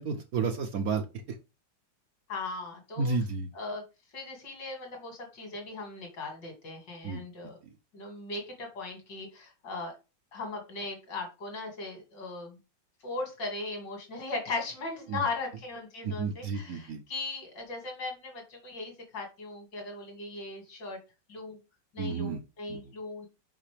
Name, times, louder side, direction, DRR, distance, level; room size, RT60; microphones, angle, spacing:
voice 1, 0.0-1.4 3.0-3.5 7.0-7.2 7.6-7.7 15.1-15.2 16.0-17.0 22.0-22.4 22.7-22.8, right 4 dB, 60° right, 5 dB, 1.1 m, -32 dB
voice 2, 2.3-3.1 3.5-3.8 4.1-7.6 7.9-9.9 10.3-12.6 13.0-21.0 21.3-21.6 21.9-23.3, left 3 dB, 70° left, 2 dB, 2.9 m, -38 dB
5.8 x 5.3 x 3.4 m, 0.28 s
omnidirectional pair, 2.0 m